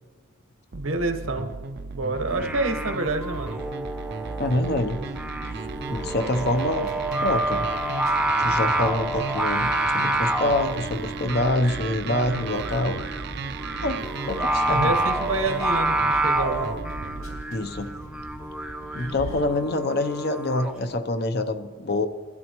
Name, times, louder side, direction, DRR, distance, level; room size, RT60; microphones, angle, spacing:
sound 1, 0.7-17.5, right 4 dB, 50° right, 0.5 m, -36 dB
voice 1, 0.7-1.5 1.9-3.6 14.3-16.7, right 2 dB, 85° right, 5 dB, 1.2 m, -28 dB
Singing, 2.3-20.8, right 1 dB, 5° right, 0.6 m, -28 dB
voice 2, 4.4-5.0 5.5-6.9 7.2-7.7 8.4-13.0 13.8-14.0 14.3-14.9 17.5-17.9 18.9-22.1, left 2 dB, 50° left, 8 dB, 0.7 m, -26 dB
sound 2, 4.7-19.4, equal, 80° left, 2.4 m, -43 dB
21.0 x 12.0 x 3.0 m, 1.5 s
head